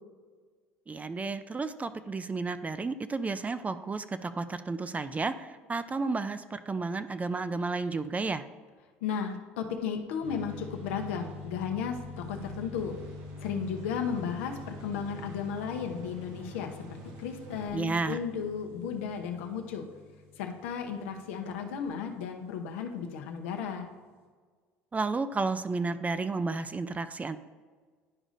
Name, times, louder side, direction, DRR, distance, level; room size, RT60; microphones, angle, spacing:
voice 1, 0.9-8.4 17.7-18.2 24.9-27.4, right 3 dB, 20° right, 12 dB, 0.4 m, -32 dB
voice 2, 9.0-12.9 13.4-19.9 20.4-23.9, left 7 dB, 80° left, 4 dB, 0.8 m, -34 dB
sound 1, 10.2-22.7, left 3 dB, 80° right, 1.4 m, -46 dB
sound 2, 11.9-17.7, right 4 dB, 60° right, 1.2 m, -50 dB
10.5 x 4.9 x 2.6 m, 1.5 s
hypercardioid pair, 70°, 7 cm